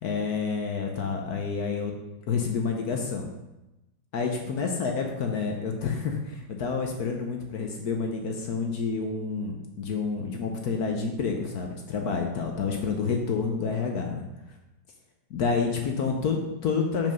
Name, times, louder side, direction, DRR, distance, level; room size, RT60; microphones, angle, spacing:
voice 1, 0.0-1.9 2.3-3.3 4.1-14.3 15.3-17.1, left 5 dB, 60° left, 2 dB, 1.1 m, -29 dB
5.5 x 5.3 x 5.2 m, 0.98 s
omnidirectional pair, 2.2 m